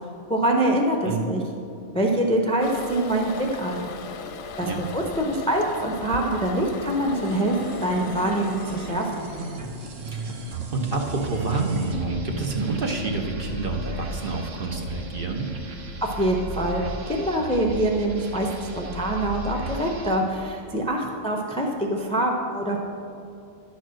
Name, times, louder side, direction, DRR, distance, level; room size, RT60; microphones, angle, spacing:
voice 1, 0.3-1.4 1.9-3.9 4.6-9.3 16.0-22.8, right 1 dB, 5° left, 1 dB, 0.5 m, -25 dB
Toilet flush, 2.6-9.7, left 5 dB, 65° left, 0.8 m, -38 dB
sound 1, 7.1-20.3, right 2 dB, 80° right, 1.3 m, -36 dB
voice 2, 10.7-15.5, right 3 dB, 50° right, 1 dB, 1.0 m, -28 dB
11.0 x 4.4 x 6.3 m, 2.7 s
omnidirectional pair, 1.3 m